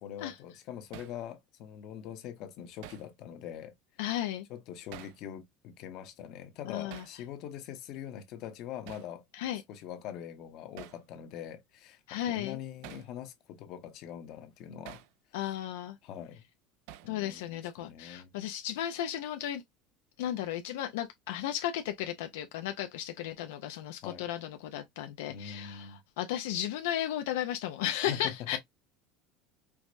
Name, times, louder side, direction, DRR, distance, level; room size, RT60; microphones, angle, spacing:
voice 1, 0.0-3.7 4.5-9.2 9.7-15.0 15.4-15.5 16.0-16.4 17.0-18.3 24.0-24.2 25.3-26.0 27.9-28.6, left 9 dB, 50° left, 0.8 m, -43 dB
Hammer, 0.9-1.2 2.8-3.1 4.9-5.2 6.9-7.2 8.9-9.1 10.8-11.0 12.8-13.1 14.8-15.1 16.9-17.2, right 12 dB, 70° right, 0.3 m, -47 dB
voice 2, 4.0-4.5 6.7-7.0 9.3-9.6 12.1-12.6 15.3-16.0 17.1-19.6 20.2-28.6, left 11 dB, 90° left, 0.4 m, -34 dB
4.6 x 2.1 x 2.5 m
cardioid pair, 145°, 0 cm